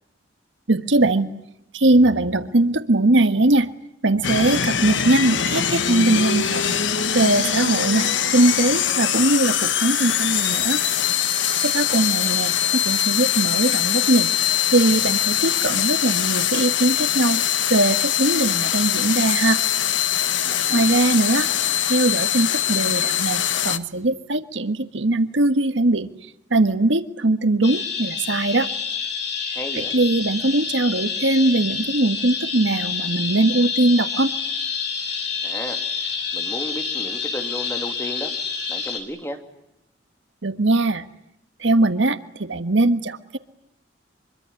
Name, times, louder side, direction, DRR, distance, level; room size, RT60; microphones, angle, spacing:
voice 1, 0.7-1.3 1.7-3.7 4.0-6.7 7.1-10.8 11.6-14.3 14.7-17.4 17.7-19.6 20.7-21.5 21.9-26.1 26.5-28.7 29.9-34.3 40.4-41.0 41.6-43.4, right 2 dB, 80° right, 10 dB, 1.5 m, -20 dB
sound 1, 4.2-23.8, left 10 dB, 80° left, 1.4 m, -22 dB
voice 2, 20.5-20.9 29.5-29.9 35.4-38.3 38.7-39.4, equal, 15° left, 5 dB, 2.8 m, -34 dB
sound 2, 27.6-39.0, left 6 dB, 60° left, 6.0 m, -28 dB
25.0 x 24.0 x 9.7 m, 0.84 s
head